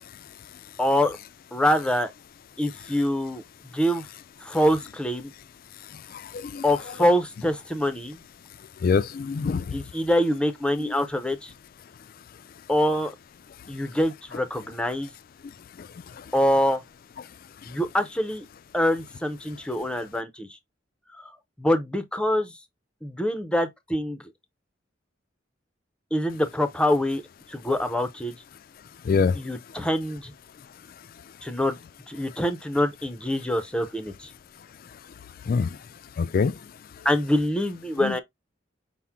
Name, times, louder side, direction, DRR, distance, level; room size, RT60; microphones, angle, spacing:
voice 1, 0.8-1.2 1.5-2.1 2.6-3.4 3.7-4.0 4.4-5.3 6.6-8.2 9.7-11.5 12.7-13.1 13.7-15.1 16.3-16.8 17.7-18.4 18.7-20.5 21.6-22.5 23.0-24.2 26.1-27.2 27.5-28.4 29.4-30.3 31.4-31.8 32.1-34.3 37.0-38.2, left 1 dB, 5° left, 0.5 m, -25 dB
voice 2, 8.8-9.6 10.8-10.9 29.1-29.4 35.5-35.7 36.2-36.5 38.0-38.1, left 5 dB, 50° left, 0.3 m, -23 dB
5.8 x 2.1 x 3.5 m
head